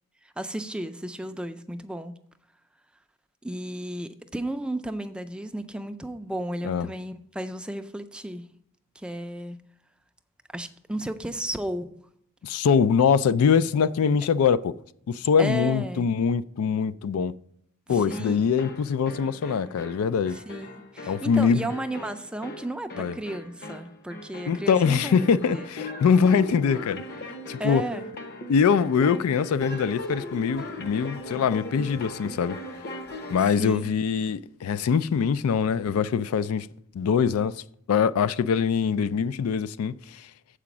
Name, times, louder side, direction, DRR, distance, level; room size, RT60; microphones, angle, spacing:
voice 1, 0.4-2.1 3.4-8.4 9.0-9.6 10.5-12.0 15.4-16.1 17.9-18.5 20.3-25.7 27.6-28.0 33.4-33.9, right 1 dB, 5° right, 0.3 m, -33 dB
voice 2, 12.4-14.7 15.1-17.3 17.9-20.4 21.1-21.7 23.0-23.1 24.5-27.0 27.5-27.8 28.5-32.6 33.3-36.7 36.9-37.6 37.9-40.2, left 6 dB, 80° left, 0.3 m, -23 dB
sound 1, 18.1-33.6, left 1 dB, 50° left, 0.9 m, -39 dB
7.6 x 5.0 x 7.1 m
head